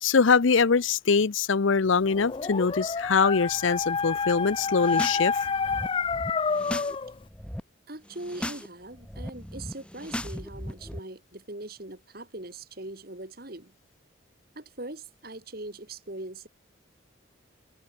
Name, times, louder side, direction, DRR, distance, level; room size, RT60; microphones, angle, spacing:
voice 1, 0.0-5.4, left 5 dB, 75° left, 0.7 m, -23 dB
Dog, 2.1-7.1, left 5 dB, 25° left, 0.3 m, -29 dB
sound 1, 4.7-5.2 5.5-6.9 7.2-7.6 8.1-8.7 8.9-11.0, left 1 dB, 5° left, 1.4 m, -37 dB
voice 2, 7.9-13.7 14.5-16.5, right 2 dB, 50° right, 2.5 m, -41 dB
head